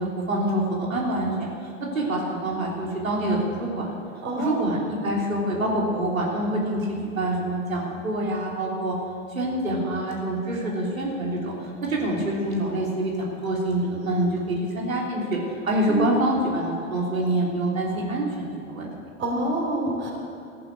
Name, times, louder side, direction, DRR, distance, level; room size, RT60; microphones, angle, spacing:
voice 1, 0.0-1.5 1.8-3.8 4.4-8.9 9.3-15.4 15.6-18.9, right 1 dB, 85° right, -3 dB, 3.4 m, -26 dB
voice 2, 4.2-4.7 15.9-16.2 19.2-20.1, right 2 dB, 30° right, -1 dB, 4.1 m, -27 dB
14.5 x 11.0 x 6.6 m, 2.6 s
hypercardioid pair, 100°, 40 cm